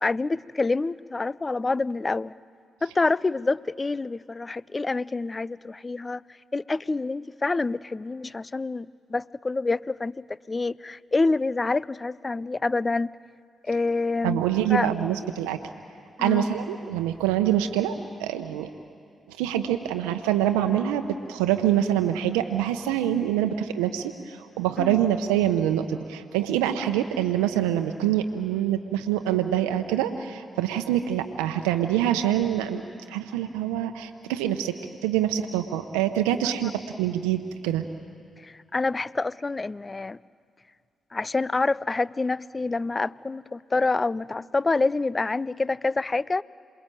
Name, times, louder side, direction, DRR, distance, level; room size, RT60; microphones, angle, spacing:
voice 1, 0.0-2.4 2.8-6.2 6.5-13.1 13.6-14.4 14.7-14.9 16.2-16.5 24.8-25.0 36.4-36.7 38.4-40.2 41.1-46.4, left 3 dB, 35° left, 21 dB, 0.5 m, -27 dB
voice 2, 14.2-15.6 16.2-17.9 18.2-18.7 19.3-32.8 33.1-34.8 35.0-37.8, right 11 dB, 90° right, 6 dB, 0.8 m, -25 dB
27.0 x 21.5 x 9.1 m, 2.4 s
hypercardioid pair, 40°, 0 cm